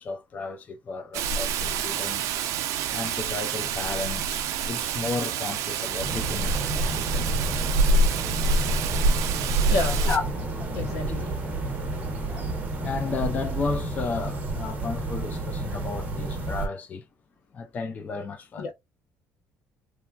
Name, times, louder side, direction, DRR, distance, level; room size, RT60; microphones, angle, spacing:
voice 1, 0.0-2.2 2.9-6.8 10.0-10.6 11.1-11.2 12.8-17.1 17.5-18.7, left 4 dB, 25° left, 0.4 m, -33 dB
Rain, 1.1-10.2, right 3 dB, 70° right, 0.4 m, -26 dB
sound 1, 5.8-13.2, right 3 dB, 5° left, 0.8 m, -44 dB
sound 2, 6.0-16.7, right 2 dB, 25° right, 0.8 m, -31 dB
voice 2, 9.7-10.0 10.7-11.6 18.6-18.7, left 2 dB, 85° left, 0.8 m, -30 dB
3.1 x 2.3 x 2.3 m
cardioid pair, 155°, 6 cm